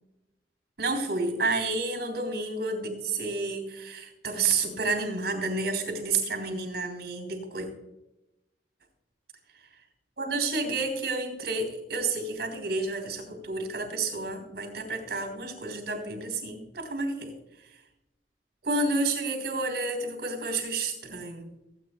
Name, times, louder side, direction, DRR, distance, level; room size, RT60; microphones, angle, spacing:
voice 1, 0.8-7.7 10.2-17.3 18.6-21.5, right 3 dB, 65° right, 6 dB, 3.2 m, -30 dB
18.5 x 8.8 x 2.3 m, 0.91 s
head